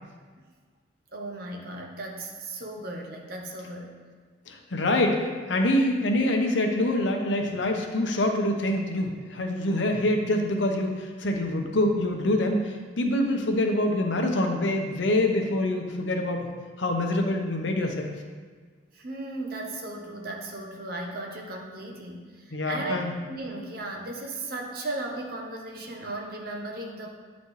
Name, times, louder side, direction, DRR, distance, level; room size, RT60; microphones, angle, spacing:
voice 1, 1.1-4.0 18.9-27.1, right 2 dB, 55° right, 0 dB, 0.9 m, -36 dB
voice 2, 4.5-16.5 16.8-18.1 22.5-23.1, left 1 dB, 80° left, 3 dB, 0.8 m, -25 dB
9.2 x 4.1 x 3.2 m, 1.5 s
head